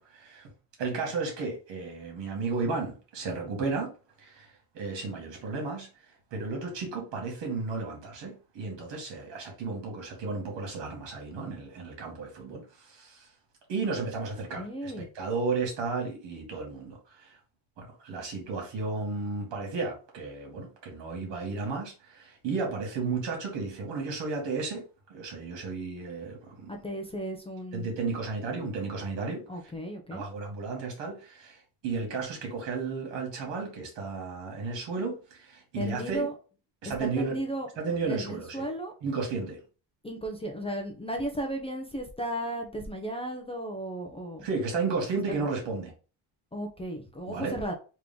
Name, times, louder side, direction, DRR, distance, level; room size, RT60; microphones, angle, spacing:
voice 1, 0.1-0.5 0.8-3.9 4.2-4.5 4.7-5.9 6.3-13.3 13.7-17.4 17.8-24.8 25.1-26.7 27.7-29.4 30.1-36.3 36.8-37.4 37.8-38.6 39.0-39.6 44.4-45.9 47.3-47.6, right 4 dB, 65° right, 2.1 m, -33 dB
voice 2, 14.6-15.1 26.7-27.9 29.5-30.2 35.7-36.3 36.8-37.7 38.0-38.9 40.0-44.5 46.5-47.7, right 1 dB, 10° left, 0.6 m, -35 dB
3.7 x 3.1 x 3.6 m
cardioid pair, 130°, 47 cm